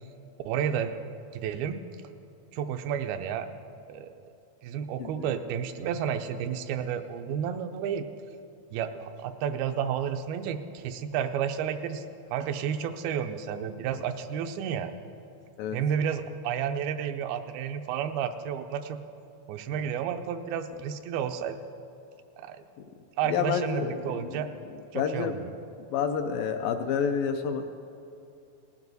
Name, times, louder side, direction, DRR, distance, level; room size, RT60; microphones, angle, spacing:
voice 1, 0.5-0.9 1.3-1.8 2.5-3.5 3.9-4.1 4.6-8.0 8.7-12.0 12.3-15.0 15.7-19.0 19.5-21.6 22.4-22.6 23.2-24.5 24.9-25.5, right 8 dB, 85° right, 8 dB, 2.4 m, -31 dB
voice 2, 5.0-5.3 15.6-15.8 23.3-24.4 24.9-25.4 25.9-27.8, left 7 dB, 80° left, 6 dB, 2.1 m, -29 dB
18.5 x 12.0 x 4.0 m, 2.7 s
omnidirectional pair, 4.4 m